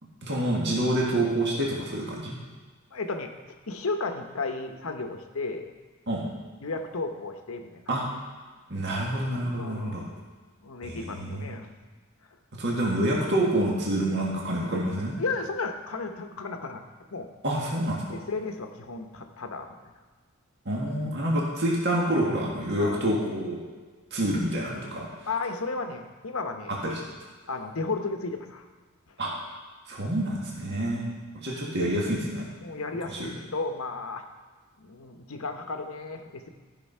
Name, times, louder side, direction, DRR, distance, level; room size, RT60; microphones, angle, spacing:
voice 1, 0.2-2.4 6.1-6.2 7.9-8.0 8.7-10.0 10.8-11.4 12.6-15.1 17.4-18.0 20.6-23.6 24.1-25.1 26.8-27.0 29.2-29.3 29.9-31.0 31.4-32.4 33.1-33.3, right 1 dB, 55° right, -3 dB, 1.7 m, -27 dB
voice 2, 2.9-5.7 6.6-7.8 8.9-9.0 9.6-10.1 10.6-11.7 12.7-12.8 15.2-16.8 17.1-17.3 18.1-19.9 20.7-20.9 22.8-23.0 25.3-26.8 27.5-28.7 30.6-31.1 32.6-34.2 34.8-36.5, left 3 dB, 75° left, 6 dB, 0.9 m, -34 dB
14.0 x 5.4 x 5.5 m, 1.4 s
head